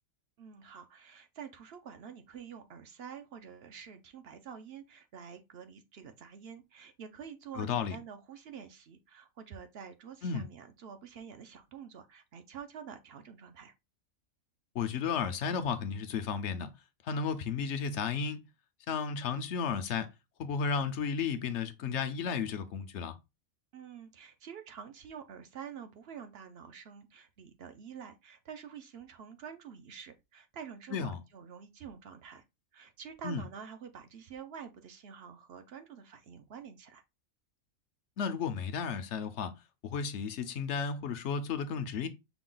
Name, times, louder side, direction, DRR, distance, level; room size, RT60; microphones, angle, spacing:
voice 1, 0.4-13.7 23.7-32.4 32.7-37.0, right 7 dB, 60° right, 0.7 m, -48 dB
voice 2, 7.5-8.0 10.2-10.4 14.7-16.7 17.0-18.4 18.9-20.1 20.4-23.2 30.9-31.2 33.2-33.4 38.2-39.5 39.8-42.1, left 6 dB, 65° left, 0.9 m, -33 dB
5.9 x 2.3 x 3.8 m
omnidirectional pair, 1.4 m